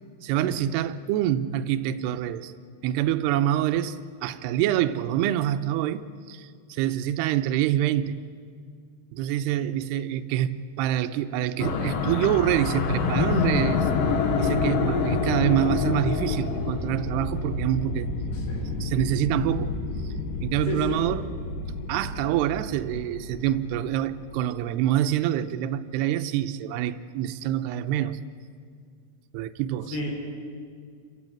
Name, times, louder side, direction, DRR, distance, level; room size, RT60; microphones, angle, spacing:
voice 1, 0.2-2.5 2.8-8.2 9.1-13.9 14.4-18.1 18.8-19.7 20.4-21.3 21.9-28.2 29.3-30.1, right 12 dB, 85° right, 11 dB, 2.8 m, -26 dB
sound 1, 11.6-24.2, left 4 dB, 65° left, 2.8 m, -28 dB
voice 2, 20.7-21.0 29.9-30.1, left 3 dB, 85° left, 0 dB, 6.7 m, -31 dB
27.5 x 15.0 x 8.9 m, 2.2 s
omnidirectional pair, 4.8 m